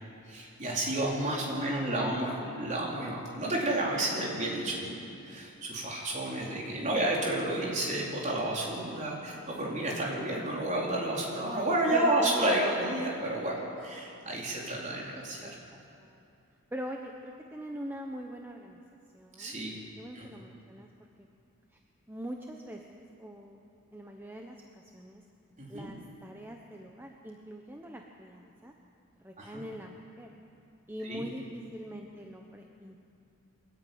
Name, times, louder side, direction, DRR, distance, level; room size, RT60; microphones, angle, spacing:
voice 1, 0.3-15.5 19.4-19.7 20.1-20.4 25.6-25.9 29.4-29.6 31.1-31.2, right 1 dB, 35° right, -3 dB, 4.3 m, -31 dB
voice 2, 1.5-2.6 11.9-12.5 15.2-16.2 16.7-18.8 19.1-20.9 21.2-21.3 22.1-23.6 23.9-25.2 25.7-28.7 29.2-30.3 30.9-33.0, equal, 10° right, 1 dB, 1.1 m, -42 dB
23.5 x 15.0 x 9.6 m, 2.7 s
head